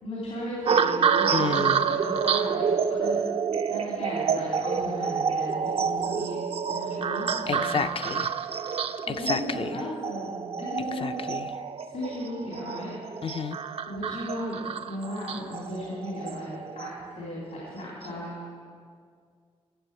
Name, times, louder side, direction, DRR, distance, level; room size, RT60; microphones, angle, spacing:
voice 1, 0.0-3.2 3.6-6.4 6.7-7.8 9.1-11.2 11.9-13.0 13.8-16.5 16.8-18.4, left 1 dB, 80° left, -7 dB, 3.7 m, -36 dB
sound 1, 0.7-17.1 17.8-18.1, right 6 dB, 55° right, 0.5 m, -28 dB
voice 2, 1.3-1.8 7.5-8.3 9.1-9.8 10.8-11.5 13.2-13.6, left 6 dB, 50° left, 11 dB, 0.6 m, -31 dB
12.5 x 6.9 x 8.2 m, 2.1 s
cardioid pair, 70°, 12 cm